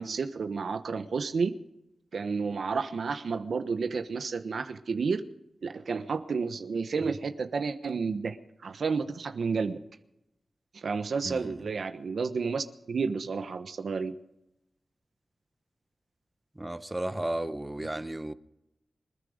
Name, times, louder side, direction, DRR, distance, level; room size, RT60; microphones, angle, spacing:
voice 1, 0.0-1.5 2.1-5.2 5.6-8.4 8.6-9.8 10.7-14.1 17.8-17.9, right 5 dB, 80° right, 1.1 m, -31 dB
voice 2, 16.6-18.3, right 1 dB, 20° right, 1.0 m, -33 dB
26.0 x 10.0 x 5.1 m
wide cardioid pair, 70°, 0 cm